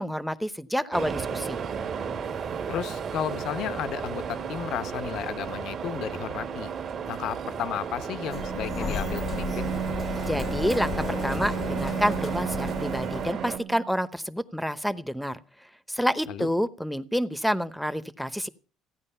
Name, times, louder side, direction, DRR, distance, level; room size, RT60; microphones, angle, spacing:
voice 1, 0.0-1.6 10.3-15.4 15.9-18.5, equal, ahead, 0.9 m, -28 dB
sound 1, 0.9-13.6, right 6 dB, 45° right, 1.8 m, -34 dB
voice 2, 2.7-6.7 7.1-9.7 16.3-16.5, left 10 dB, 65° left, 0.8 m, -33 dB
Bowed string instrument, 8.2-14.0, right 11 dB, 75° right, 0.8 m, -34 dB
Sliding door, 8.3-13.3, left 6 dB, 35° left, 0.5 m, -34 dB
15.0 x 9.5 x 5.6 m
cardioid pair, 120°, 0 cm